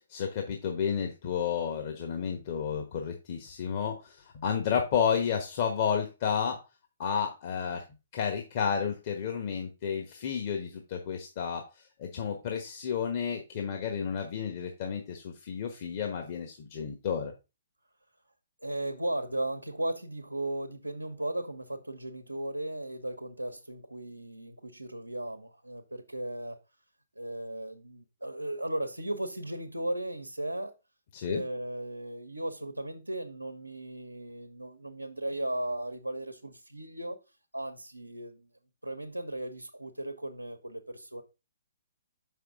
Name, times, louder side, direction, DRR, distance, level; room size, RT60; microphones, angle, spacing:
voice 1, 0.1-6.6 7.0-7.8 8.1-17.3 31.1-31.4, left 7 dB, 40° left, 3 dB, 1.2 m, -31 dB
voice 2, 18.6-26.6 27.2-30.7 31.3-37.2 37.5-38.5 38.8-41.2, right 1 dB, 90° right, 6 dB, 0.9 m, -36 dB
6.8 x 5.8 x 3.7 m, 0.28 s
figure-of-eight pair, 125°, 0 cm